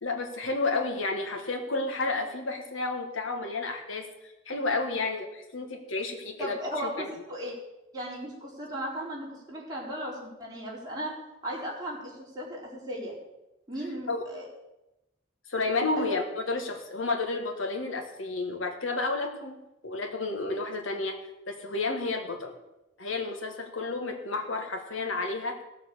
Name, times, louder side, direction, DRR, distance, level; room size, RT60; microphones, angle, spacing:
voice 1, 0.0-7.0 14.1-14.2 15.5-21.2 21.5-22.5 23.0-25.6, left 3 dB, 80° left, 4 dB, 1.7 m, -31 dB
voice 2, 6.4-7.5 7.9-11.1 11.4-13.2 13.7-14.5 16.0-16.1, equal, 20° right, -5 dB, 3.9 m, -36 dB
16.5 x 6.9 x 6.8 m, 0.95 s
head